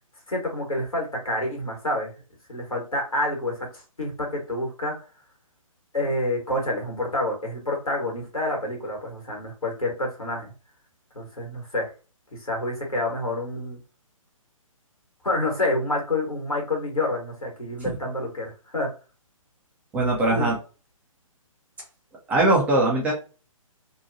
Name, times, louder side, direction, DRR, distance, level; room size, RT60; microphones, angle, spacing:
voice 1, 0.3-2.1 2.5-5.0 5.9-10.5 11.1-11.9 12.4-13.8 15.2-18.9 20.3-20.5, left 1 dB, 80° left, 0 dB, 1.4 m, -28 dB
voice 2, 19.9-20.5 22.3-23.1, right 2 dB, 10° right, -3 dB, 0.5 m, -20 dB
2.8 x 2.2 x 2.5 m, 0.34 s
figure-of-eight pair, 130°, 18 cm